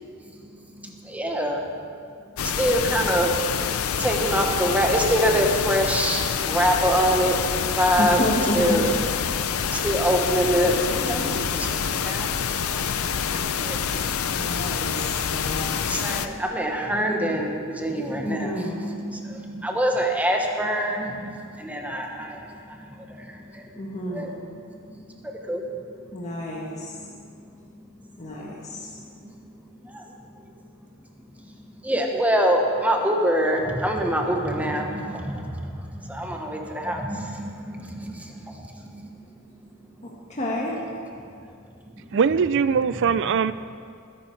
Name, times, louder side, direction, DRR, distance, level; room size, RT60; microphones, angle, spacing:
voice 1, 0.3-1.7 2.4-3.6 3.9-8.2 8.5-8.9 9.7-11.3 11.6-12.5 13.5-14.1 15.9-18.7 19.0-23.7 24.1-24.3 25.4-25.6 29.8-30.0 31.8-39.2 42.0-42.1, equal, 5° right, 1 dB, 1.1 m, -25 dB
sound 1, 2.4-16.3, left 7 dB, 75° left, 0.6 m, -27 dB
voice 2, 8.0-8.9 10.9-11.4 14.3-15.6 18.2-19.1 23.8-24.3 26.1-26.9 28.2-28.9 40.3-40.8, equal, 35° left, -3 dB, 1.5 m, -30 dB
voice 3, 42.1-43.5, right 6 dB, 55° right, 14 dB, 0.4 m, -21 dB
20.5 x 10.5 x 4.6 m, 2.3 s
head